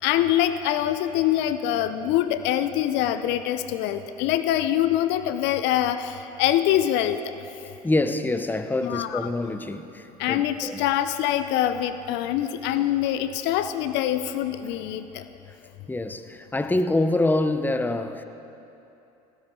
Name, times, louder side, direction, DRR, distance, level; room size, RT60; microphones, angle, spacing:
voice 1, 0.0-7.4 8.8-9.3 10.2-15.2, left 12 dB, 65° left, 11 dB, 0.6 m, -24 dB
voice 2, 7.8-10.8 15.9-18.2, left 2 dB, 10° left, 9 dB, 0.8 m, -26 dB
18.0 x 14.5 x 3.8 m, 2.9 s
hypercardioid pair, 70°, 20 cm